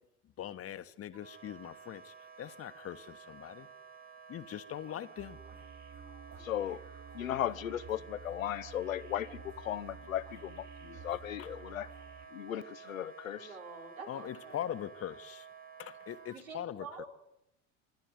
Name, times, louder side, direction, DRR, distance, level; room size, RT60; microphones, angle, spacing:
voice 1, 0.2-3.7 4.3-5.4 11.4-11.5 14.1-15.5 15.8-17.0, left 11 dB, 35° left, 1.2 m, -42 dB
Wind instrument woodwind instrument, 1.1-16.4, right 5 dB, 20° right, 1.6 m, -53 dB
sound 1, 5.2-12.3, right 6 dB, 55° right, 4.4 m, -52 dB
voice 2, 6.4-6.8 7.1-11.9 12.3-13.5, left 11 dB, 85° left, 0.8 m, -36 dB
voice 3, 13.4-14.6 16.3-17.1, right 4 dB, 85° right, 3.3 m, -47 dB
25.5 x 12.0 x 9.5 m
hypercardioid pair, 75°, 39 cm